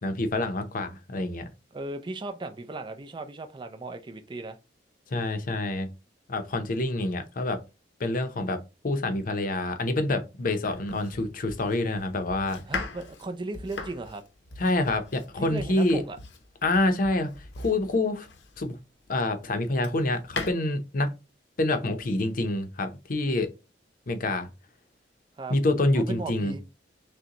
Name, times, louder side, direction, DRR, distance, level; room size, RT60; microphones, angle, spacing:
voice 1, 0.0-1.5 5.1-5.9 6.3-7.6 8.0-12.6 14.6-16.0 16.6-18.3 18.6-18.8 19.1-21.1 21.6-23.5 24.1-24.5 25.5-26.5, left 2 dB, 50° left, 0.7 m, -27 dB
voice 2, 1.7-4.6 12.7-14.2 15.4-16.2 25.4-25.6 25.9-26.6, right 2 dB, 25° right, 0.5 m, -36 dB
Domestic sounds home sounds, 10.6-18.8 19.4-20.5, left 4 dB, 90° left, 0.8 m, -40 dB
6.3 x 2.2 x 2.9 m
head